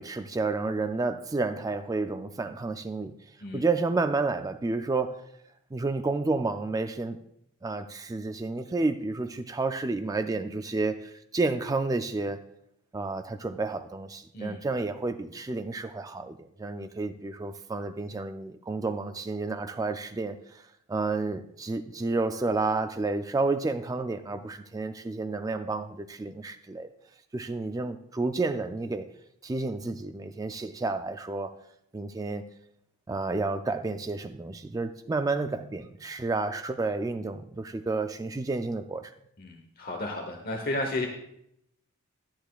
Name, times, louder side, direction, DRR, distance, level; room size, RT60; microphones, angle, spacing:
voice 1, 0.0-3.1 3.5-5.2 5.7-7.2 7.6-12.4 12.9-20.6 20.9-26.9 27.3-29.1 29.4-31.5 31.9-32.4 33.1-39.1, right 3 dB, 15° right, 8 dB, 0.3 m, -30 dB
voice 2, 39.4-41.1, left 2 dB, 45° left, 3 dB, 1.0 m, -33 dB
11.5 x 10.5 x 2.3 m, 0.74 s
head